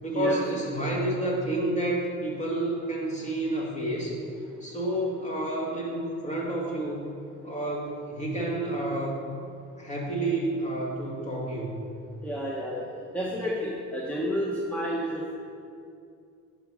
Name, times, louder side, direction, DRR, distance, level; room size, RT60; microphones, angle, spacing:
voice 1, 0.0-4.2 4.6-7.1 7.4-9.3 9.8-11.8, right 1 dB, 25° left, -3 dB, 2.0 m, -29 dB
voice 2, 12.2-15.3, equal, 5° left, -5 dB, 1.1 m, -30 dB
10.0 x 3.7 x 6.4 m, 2.4 s
cardioid pair, 90°, 30 cm